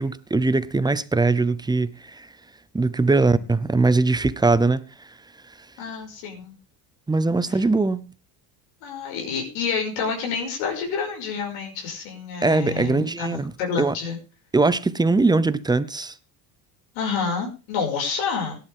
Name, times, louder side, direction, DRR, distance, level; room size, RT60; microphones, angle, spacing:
voice 1, 0.0-2.3 2.7-4.8 7.1-8.1 12.4-13.5 13.8-14.0 14.5-16.1, right 3 dB, 10° right, 0.7 m, -21 dB
voice 2, 5.8-6.6 8.8-14.2 16.9-18.6, left 5 dB, 80° left, 5.8 m, -28 dB
18.0 x 11.5 x 3.6 m
supercardioid pair, 105°, 46 cm